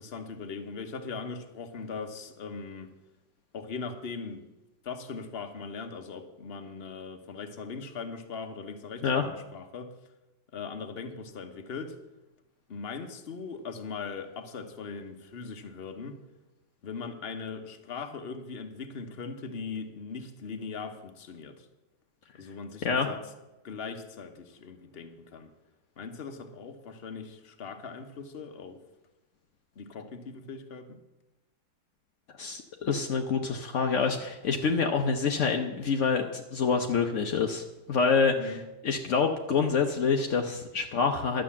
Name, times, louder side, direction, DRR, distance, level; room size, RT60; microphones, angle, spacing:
voice 1, 0.0-2.9 3.5-4.4 4.8-9.9 10.5-12.0 12.7-16.2 16.8-21.7 22.3-23.2 23.6-25.5 26.0-28.8 29.8-31.0 38.4-38.6, left 5 dB, 45° left, 6 dB, 0.8 m, -40 dB
voice 2, 32.4-38.6 38.8-41.4, left 5 dB, 75° left, 4 dB, 0.6 m, -27 dB
12.0 x 7.7 x 7.2 m, 1.0 s
omnidirectional pair, 2.3 m